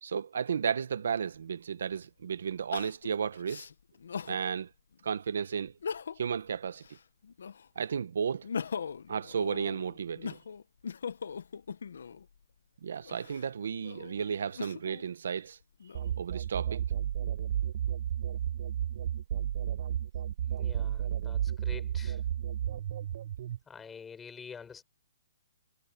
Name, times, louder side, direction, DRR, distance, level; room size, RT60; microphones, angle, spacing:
voice 1, 0.0-3.6 4.2-4.7 5.0-5.7 6.2-6.8 7.8-8.5 9.1-10.4 12.8-15.6 16.2-16.8, right 7 dB, 75° right, 1.1 m, -33 dB
Crying sobbing, 1.4-1.5 2.7-4.4 4.9-5.0 5.7-6.4 6.8-7.8 8.2-12.3 13.0-15.0 15.6-16.4, left 6 dB, 80° left, 0.9 m, -40 dB
sound 1, 15.9-23.6, right 10 dB, 55° right, 0.4 m, -32 dB
voice 2, 20.6-22.2 23.7-24.8, left 6 dB, 10° left, 5.9 m, -47 dB
hypercardioid pair, 155°, 0 cm